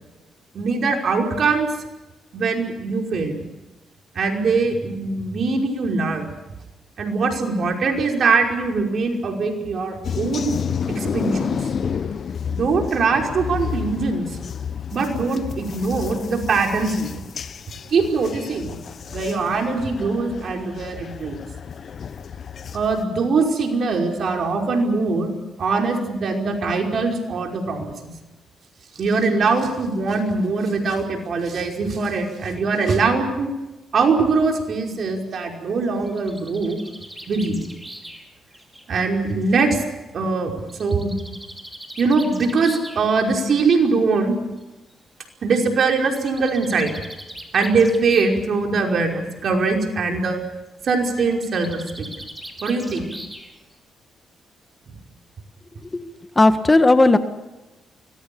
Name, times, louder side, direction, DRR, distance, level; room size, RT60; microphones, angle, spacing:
voice 1, 0.5-1.7 2.3-3.4 4.1-6.3 7.0-10.5 10.9-11.5 12.5-14.2 14.9-17.2 17.9-18.8 19.1-21.4 22.7-25.3 25.6-27.9 29.0-33.5 33.9-36.8 37.3-37.6 38.9-39.8 40.1-40.5 40.8-41.1 42.0-44.3 45.4-46.9 47.5-50.4 50.8-52.1 52.6-53.1, right 4 dB, 60° right, 2 dB, 5.3 m, -22 dB
sound 1, 10.0-23.0, left 7 dB, 55° left, 1.1 m, -31 dB
Bird, 35.8-39.6 40.7-43.0 44.1-44.2 44.6-44.7 44.9-45.0 46.0-48.5 48.8-49.2 51.3-53.7, right 1 dB, 10° right, 4.9 m, -40 dB
voice 2, 56.3-57.2, left 2 dB, 25° left, 9 dB, 1.8 m, -14 dB
25.0 x 20.5 x 7.1 m, 1.0 s
cardioid pair, 70°, 0 cm